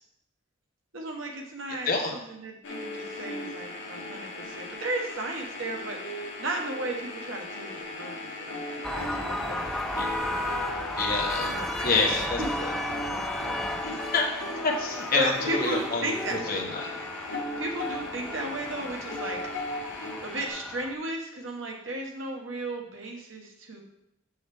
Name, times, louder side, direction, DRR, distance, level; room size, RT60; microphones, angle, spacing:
voice 1, 0.9-9.8 10.2-10.6 11.4-12.2 15.1-16.7 17.6-19.4 19.8-23.8, right 1 dB, 70° right, 1 dB, 1.3 m, -35 dB
sound 1, 2.6-20.5, left 2 dB, 65° left, 1.4 m, -37 dB
sound 2, 8.8-20.9, left 1 dB, ahead, 0.4 m, -34 dB
voice 2, 11.0-11.5 11.8-12.4 13.8-14.3 14.6-16.1 16.5-16.7, left 3 dB, 45° left, 0 dB, 1.2 m, -27 dB
7.2 x 6.1 x 3.5 m, 0.81 s
head